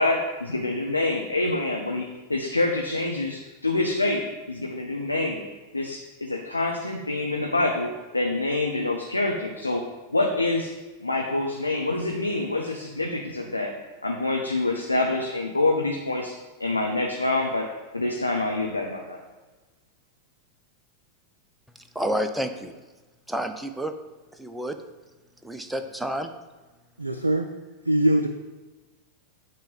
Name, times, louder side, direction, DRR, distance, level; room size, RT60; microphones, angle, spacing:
voice 1, 0.0-2.0 2.3-4.2 4.5-5.4 5.7-9.8 10.1-10.7 11.0-13.7 14.0-16.3 16.6-17.7 17.9-19.2, left 2 dB, 80° left, 0 dB, 0.7 m, -26 dB
voice 2, 21.9-22.8 23.3-23.9 24.3-24.7 25.4-26.3, equal, 5° right, 7 dB, 0.5 m, -29 dB
voice 3, 27.0-27.5 27.9-28.3, right 1 dB, 85° right, 6 dB, 0.4 m, -22 dB
8.8 x 3.0 x 5.2 m, 1.2 s
figure-of-eight pair, 90°, 0 cm